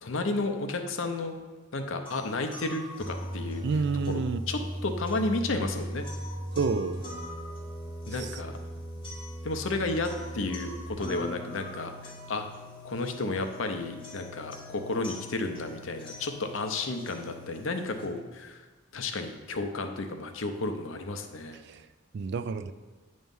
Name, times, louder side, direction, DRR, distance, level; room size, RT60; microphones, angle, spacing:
voice 1, 0.0-1.3 1.7-3.6 4.1-4.2 4.5-6.0 8.1-8.6 9.4-12.4 12.8-18.6 18.9-21.6, left 2 dB, 70° left, 6 dB, 0.7 m, -32 dB
sound 1, 2.1-18.1, equal, 25° left, 1.1 m, -39 dB
voice 2, 3.6-4.4 6.5-7.0 8.2-8.3 21.6-21.9 22.1-22.7, right 4 dB, 55° right, 11 dB, 0.3 m, -29 dB
9.0 x 3.1 x 5.4 m, 1.3 s
head